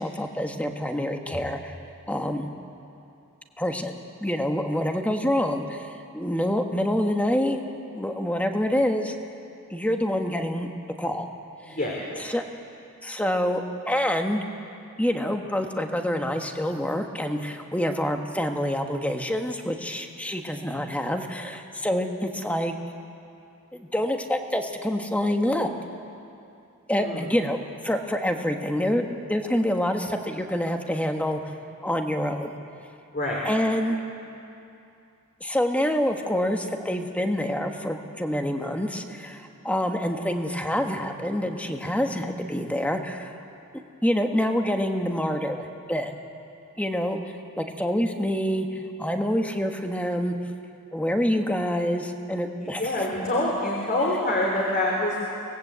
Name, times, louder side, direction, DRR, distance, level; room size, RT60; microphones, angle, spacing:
voice 1, 0.0-1.7 2.1-2.5 3.6-7.6 7.9-9.1 9.7-10.7 11.0-11.3 11.7-11.8 12.3-12.4 13.0-14.4 15.0-22.7 23.7-25.7 26.9-27.6 27.8-31.4 31.8-32.5 33.4-34.0 35.4-43.4 44.0-46.1 46.8-47.2 47.6-50.3 50.9-53.1, equal, 5° left, 4 dB, 1.4 m, -26 dB
voice 2, 11.7-12.0 27.0-27.2 33.1-33.4 52.6-55.2, left 1 dB, 40° left, -3 dB, 3.4 m, -26 dB
25.0 x 19.5 x 8.2 m, 2.6 s
head